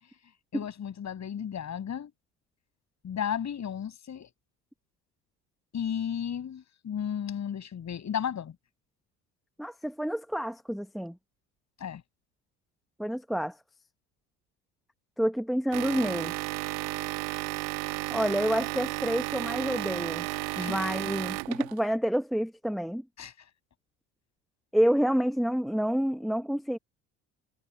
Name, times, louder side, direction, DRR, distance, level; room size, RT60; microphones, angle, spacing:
voice 1, 0.5-2.1 3.0-4.3 5.7-8.6 11.8-12.0 20.6-20.8 23.2-23.3, left 8 dB, 40° left, 7.0 m, -34 dB
voice 2, 9.6-11.2 13.0-13.6 15.2-16.3 18.1-20.3 20.6-23.0 24.7-26.8, equal, ahead, 0.8 m, -28 dB
sound 1, 15.7-21.9, right 26 dB, 70° right, 1.3 m, -33 dB
hypercardioid pair, 70°, 41 cm